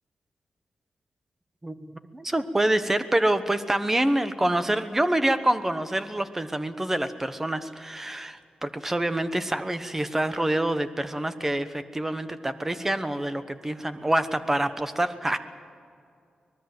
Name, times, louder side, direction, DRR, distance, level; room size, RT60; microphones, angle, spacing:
voice 1, 1.6-15.4, right 1 dB, 15° right, 10 dB, 1.1 m, -26 dB
24.5 x 19.5 x 7.9 m, 2.3 s
wide cardioid pair, 150°, 2 cm